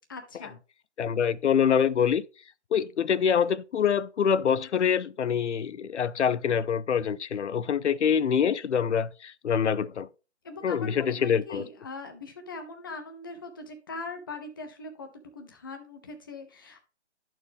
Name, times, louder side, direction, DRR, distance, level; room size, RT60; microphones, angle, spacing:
voice 1, 0.1-0.6 10.4-15.1 15.3-16.8, left 3 dB, 20° left, 0.7 m, -41 dB
voice 2, 1.0-2.2 2.7-10.1 10.6-11.6, left 7 dB, 85° left, 0.6 m, -25 dB
10.5 x 4.6 x 3.4 m
hypercardioid pair, 160°, 34 cm